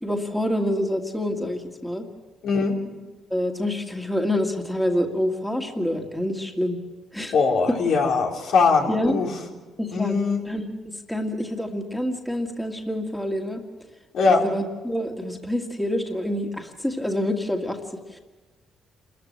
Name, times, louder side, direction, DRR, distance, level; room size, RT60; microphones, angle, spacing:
voice 1, 0.0-2.0 3.3-6.8 7.1-7.3 7.7-7.8 8.9-9.2 9.8-10.2 10.4-13.6 14.3-18.2, left 1 dB, 5° left, 2 dB, 2.2 m, -27 dB
voice 2, 2.4-2.8 7.3-9.3 9.9-10.4 14.1-14.4, left 4 dB, 75° left, 0 dB, 3.7 m, -21 dB
27.5 x 14.5 x 7.7 m, 1.2 s
cardioid pair, 90°, 0 cm